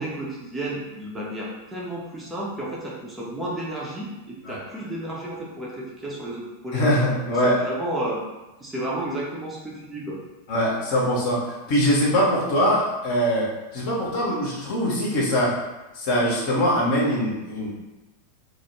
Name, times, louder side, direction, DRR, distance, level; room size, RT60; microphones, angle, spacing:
voice 1, 0.0-6.8 7.3-8.2 8.6-10.2, right 1 dB, 10° right, -5 dB, 0.5 m, -32 dB
voice 2, 6.7-7.6 10.5-15.5 15.9-17.7, equal, 50° left, -4 dB, 0.7 m, -22 dB
2.2 x 2.0 x 3.0 m, 1.1 s
figure-of-eight pair, 90°, 0 cm